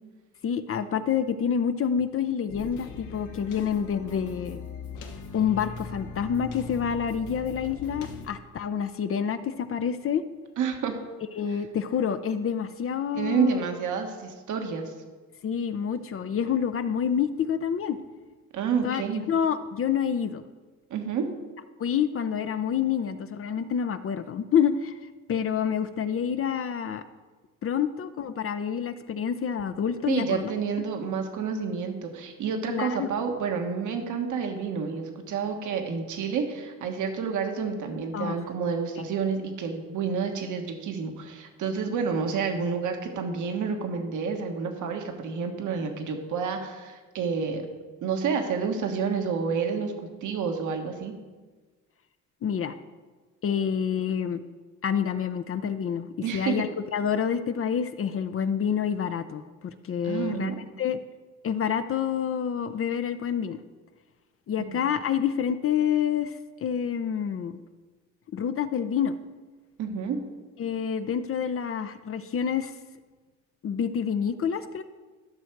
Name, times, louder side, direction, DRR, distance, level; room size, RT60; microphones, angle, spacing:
voice 1, 0.4-4.6 5.3-10.2 11.4-13.6 15.4-18.0 18.8-19.0 19.3-20.4 21.8-24.9 25.3-27.0 27.6-30.5 32.7-33.1 38.1-38.4 52.4-52.7 53.4-54.4 54.8-60.5 60.8-61.0 61.4-63.6 64.5-66.3 66.6-67.6 68.3-69.1 70.6-72.7 73.6-74.8, left 8 dB, 45° left, 10 dB, 0.6 m, -27 dB
sound 1, 2.5-8.3, left 4 dB, 85° left, 1.3 m, -40 dB
voice 2, 10.6-11.0 11.5-11.6 13.1-14.9 18.5-19.2 20.9-21.2 30.1-47.7 48.0-49.9 50.2-51.1 56.2-56.7 60.0-60.6 64.6-64.8 69.8-70.2, right 6 dB, 80° right, 5 dB, 1.4 m, -29 dB
13.0 x 6.3 x 4.6 m, 1.3 s
cardioid pair, 90°, 30 cm